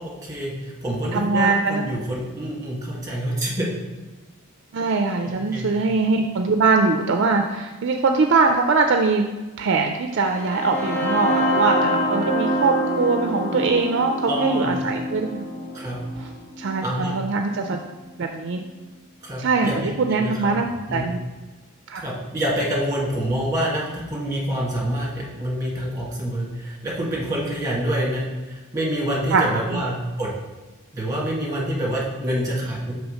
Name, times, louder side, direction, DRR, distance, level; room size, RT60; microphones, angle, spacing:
voice 1, 0.0-3.7 5.2-5.7 14.3-14.7 15.7-16.0 16.8-17.1 19.2-21.0 21.9-30.3 30.9-32.9, right 1 dB, 15° right, -5 dB, 1.6 m, -27 dB
voice 2, 1.1-1.9 4.7-9.2 9.6-15.5 16.2-16.3 16.6-17.8 18.2-18.6 19.4-21.2 21.9-22.0 29.3-29.8, right 4 dB, 55° right, 4 dB, 0.4 m, -22 dB
sound 1, 10.2-18.1, equal, 35° left, 1.3 m, -26 dB
6.3 x 3.4 x 4.9 m, 1.2 s
head